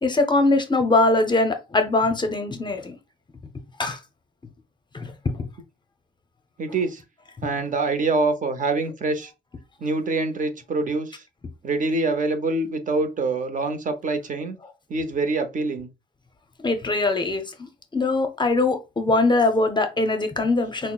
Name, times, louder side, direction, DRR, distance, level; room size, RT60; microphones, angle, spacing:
voice 1, 0.0-3.0 3.8-4.0 4.9-5.4 16.6-20.9, left 2 dB, 25° left, 0.6 m, -22 dB
voice 2, 6.6-7.0 7.4-9.3 9.8-11.2 11.6-14.6 14.9-15.9, right 3 dB, 40° right, 0.7 m, -25 dB
5.6 x 2.0 x 2.3 m
cardioid pair, 90°, 20 cm